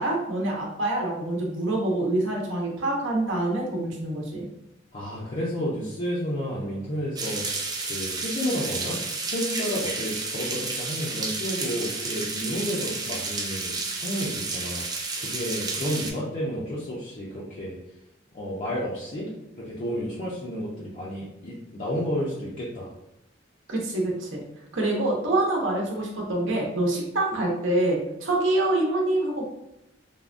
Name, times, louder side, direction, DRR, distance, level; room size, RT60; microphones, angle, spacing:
voice 1, 0.0-4.4 23.7-24.4 24.7-29.4, right 2 dB, 70° right, -1 dB, 0.8 m, -26 dB
voice 2, 4.9-7.5 7.9-9.0 9.3-14.8 15.2-17.8 18.3-19.3 19.6-22.9, equal, 40° left, -6 dB, 0.5 m, -31 dB
sound 1, 7.2-16.1, right 3 dB, 20° right, 0.4 m, -31 dB
3.4 x 2.1 x 2.5 m, 0.89 s
head